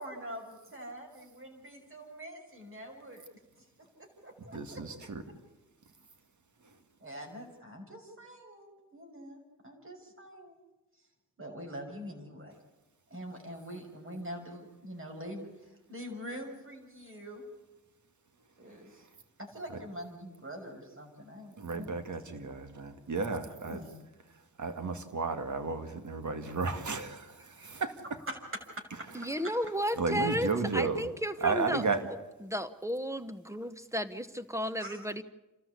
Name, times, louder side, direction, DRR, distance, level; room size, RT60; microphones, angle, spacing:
voice 1, 0.0-3.2 3.6-4.8 5.3-5.4 7.0-10.5 11.4-12.5 13.1-17.4 18.6-19.1 19.4-21.9 23.6-23.9 27.6-27.8 28.8-28.9 30.3-30.6 34.8-35.0, equal, 35° right, 2 dB, 6.5 m, -45 dB
voice 2, 4.5-5.2 21.6-23.8 24.6-28.0 30.0-31.1 31.4-32.1, right 4 dB, 55° right, 8 dB, 2.2 m, -33 dB
voice 3, 29.1-31.8 32.4-35.2, equal, 10° right, 12 dB, 1.2 m, -33 dB
29.0 x 13.5 x 8.4 m, 1.0 s
cardioid pair, 55°, 35 cm